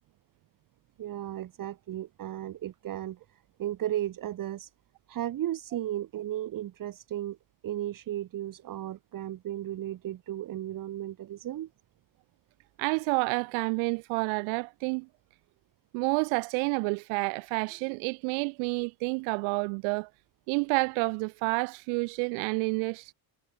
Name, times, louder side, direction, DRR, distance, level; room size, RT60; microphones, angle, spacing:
voice 1, 1.0-3.2 3.6-4.7 5.1-7.4 7.6-11.7, right 12 dB, 45° right, 1.9 m, -35 dB
voice 2, 12.8-15.1 15.9-20.1 20.5-23.1, right 36 dB, 85° right, 0.9 m, -29 dB
cardioid pair, 130°, 47 cm